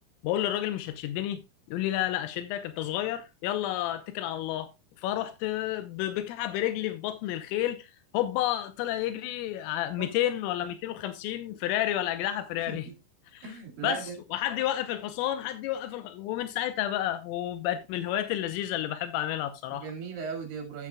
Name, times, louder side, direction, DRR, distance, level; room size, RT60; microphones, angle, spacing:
voice 1, 0.2-1.4 1.7-4.7 5.0-12.9 13.3-13.6 13.8-19.9, left 13 dB, 90° left, 3.4 m, -31 dB
voice 2, 13.4-14.2 19.7-20.9, right 6 dB, 50° right, 3.5 m, -37 dB
12.0 x 8.3 x 2.3 m
omnidirectional pair, 5.9 m